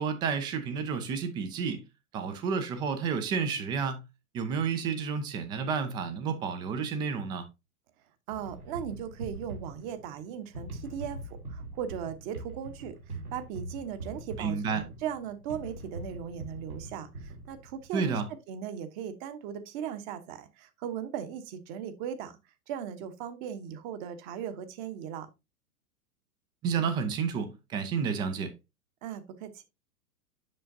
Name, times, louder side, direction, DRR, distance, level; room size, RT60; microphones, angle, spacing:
voice 1, 0.0-1.8 2.1-4.0 4.3-7.5 14.4-14.8 17.9-18.3 26.6-28.5, right 6 dB, 10° right, 0.4 m, -30 dB
voice 2, 8.3-18.2 18.5-22.4 22.7-25.3 29.0-29.5, right 8 dB, 35° right, 1.1 m, -38 dB
sound 1, 8.3-17.9, right 2 dB, 85° right, 3.2 m, -42 dB
7.7 x 6.5 x 2.7 m
figure-of-eight pair, 100°, 44 cm